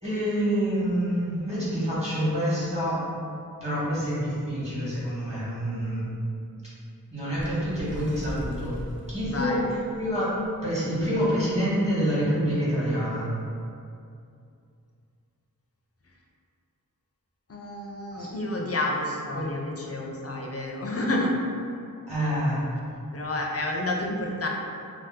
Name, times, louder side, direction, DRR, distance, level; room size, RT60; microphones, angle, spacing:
voice 1, 0.0-3.0 3.6-6.0 7.1-8.7 9.1-9.6 9.9-10.4 10.6-13.3 18.1-18.3 19.3-19.6 22.1-22.6, equal, 20° right, -10 dB, 1.2 m, -27 dB
Bird, 7.3-10.5 11.0-11.1 11.4-11.7 12.5-12.6, equal, 35° right, 0.4 m, -39 dB
voice 2, 9.2-9.7 17.5-21.4 23.1-24.5, left 1 dB, 40° left, 0 dB, 0.4 m, -29 dB
2.7 x 2.1 x 3.5 m, 2.5 s
wide cardioid pair, 50°, 36 cm